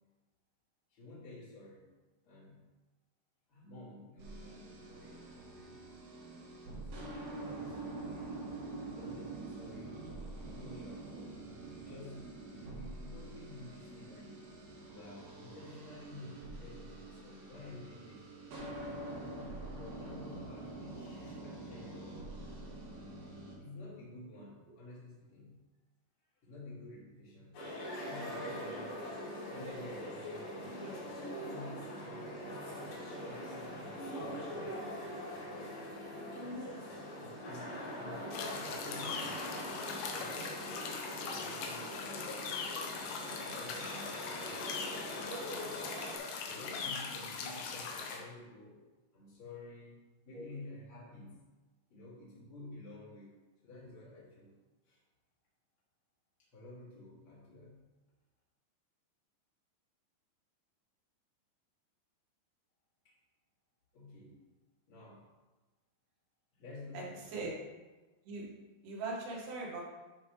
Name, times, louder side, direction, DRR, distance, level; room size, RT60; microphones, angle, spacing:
voice 1, 0.9-1.9 2.2-2.6 3.5-5.9 6.6-7.0 7.4-8.6 8.9-10.1 10.4-14.5 14.8-18.4 19.8-22.3 23.6-25.6 26.4-27.6 28.0-30.7 31.3-35.0 35.3-36.8 37.1-40.8 41.2-42.8 43.2-44.6 45.1-45.8 46.4-48.8 49.1-50.0 50.2-51.4 51.9-53.4 53.6-54.5 54.8-55.0 56.4-57.8 63.0-63.2 63.9-64.4 64.9-65.3 66.5-67.4, left 1 dB, 35° left, -7 dB, 2.6 m, -52 dB
sound 1, 4.2-23.6, right 2 dB, 55° right, 2.6 m, -46 dB
sound 2, 27.5-46.2, equal, 55° left, 5.0 m, -42 dB
sound 3, 38.3-48.2, left 5 dB, 90° left, 2.2 m, -41 dB
voice 2, 66.9-67.5 68.2-68.5 68.8-69.8, right 3 dB, 75° right, -4 dB, 4.5 m, -40 dB
12.5 x 5.2 x 3.3 m, 1.2 s
omnidirectional pair, 5.9 m